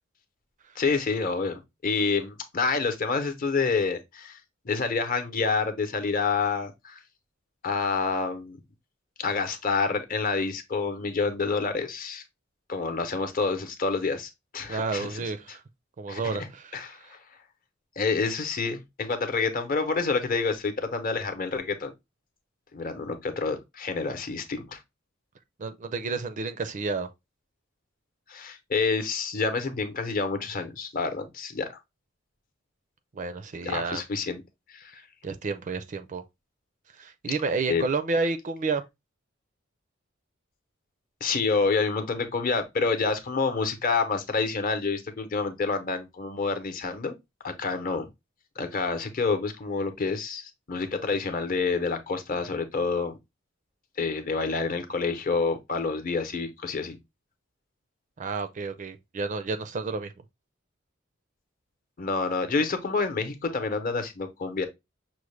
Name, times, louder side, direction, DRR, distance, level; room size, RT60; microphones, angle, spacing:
voice 1, 0.8-4.4 4.6-7.0 7.6-8.6 9.2-12.2 12.7-15.2 16.1-16.4 16.7-17.2 18.0-21.9 22.7-24.8 28.3-31.7 33.6-34.4 34.7-35.0 37.7-37.8 41.2-47.1 47.4-48.1 48.6-53.2 54.0-57.0 62.0-64.7, left 4 dB, 45° left, 0.8 m, -28 dB
voice 2, 14.7-15.6 16.0-16.8 25.6-27.1 33.1-34.0 35.2-36.2 37.0-38.8 58.2-60.1, right 4 dB, 40° right, 0.4 m, -30 dB
6.1 x 2.1 x 3.1 m
head